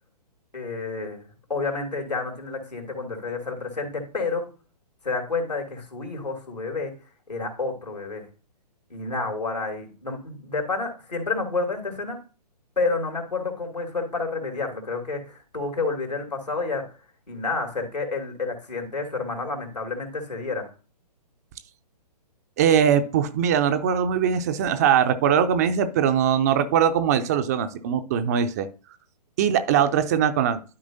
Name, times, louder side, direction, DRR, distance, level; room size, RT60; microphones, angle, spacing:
voice 1, 0.5-1.2 1.5-4.5 5.0-6.9 7.3-8.2 8.9-12.2 12.8-16.8 17.3-20.7, left 3 dB, 80° left, 3 dB, 2.8 m, -29 dB
voice 2, 22.6-28.7 29.4-30.6, right 8 dB, 25° right, 9 dB, 0.5 m, -21 dB
12.5 x 4.8 x 2.6 m, 0.34 s
figure-of-eight pair, 125°, 21 cm